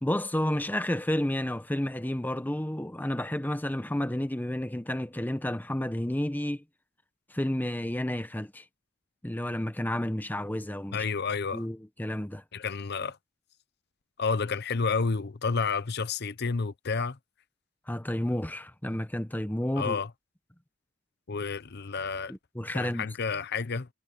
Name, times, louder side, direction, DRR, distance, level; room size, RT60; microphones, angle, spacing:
voice 1, 0.0-6.6 7.3-8.6 9.2-11.1 11.5-12.4 17.9-20.0 22.3-23.1, left 1 dB, 10° left, 0.8 m, -31 dB
voice 2, 10.9-11.7 12.5-13.2 14.2-17.2 19.8-20.1 21.3-22.3 22.7-23.9, left 5 dB, 55° left, 0.8 m, -30 dB
head